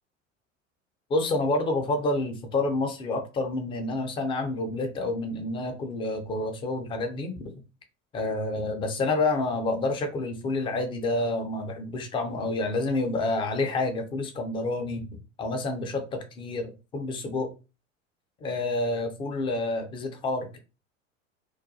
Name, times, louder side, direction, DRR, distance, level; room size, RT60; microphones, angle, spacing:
voice 1, 1.1-7.5 8.1-15.1 15.4-17.5 18.4-20.6, left 2 dB, 15° left, 0.3 m, -28 dB
2.4 x 2.2 x 2.6 m
figure-of-eight pair, 75°, 39 cm